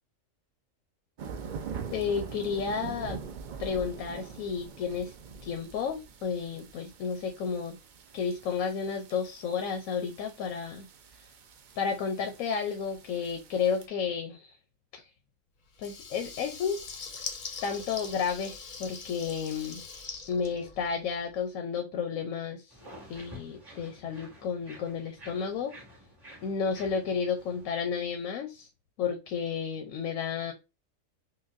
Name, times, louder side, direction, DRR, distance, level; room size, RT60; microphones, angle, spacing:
sound 1, 1.2-13.9, right 6 dB, 65° right, 0.4 m, -44 dB
voice 1, 1.9-3.2 3.6-5.1 5.4-7.8 8.1-10.9 11.8-14.5 15.8-16.8 17.6-19.8 20.3-22.7 23.1-25.7 26.4-28.7 29.0-30.5, left 6 dB, 85° left, 1.0 m, -32 dB
Water tap faucet / Liquid, 15.7-21.2, left 5 dB, 50° left, 0.6 m, -42 dB
sound 2, 22.7-27.8, equal, 25° right, 1.6 m, -50 dB
5.7 x 2.2 x 2.5 m
omnidirectional pair, 1.4 m